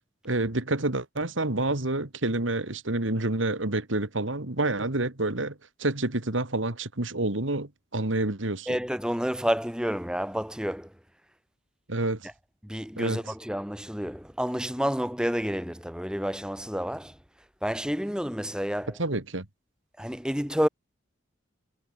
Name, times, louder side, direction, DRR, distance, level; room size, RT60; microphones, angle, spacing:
voice 1, 0.2-5.5 5.8-8.7 11.9-12.3 13.0-13.2 19.0-19.5, right 2 dB, 90° right, 2.5 m, -28 dB
voice 2, 8.7-10.9 12.2-12.3 12.6-17.2 17.6-19.0 20.0-20.7, equal, 5° right, 3.4 m, -29 dB
head